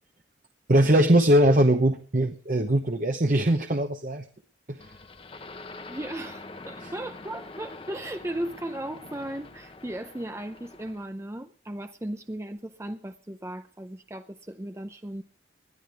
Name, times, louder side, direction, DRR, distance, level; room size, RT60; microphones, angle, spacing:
voice 1, 0.7-4.3 4.7-4.9 6.8-6.9, right 1 dB, 45° right, 1.0 m, -21 dB
sound 1, 4.8-11.1, left 3 dB, 30° left, 1.0 m, -44 dB
voice 2, 5.9-15.2, right 1 dB, 15° right, 0.6 m, -36 dB
20.5 x 13.0 x 3.4 m
head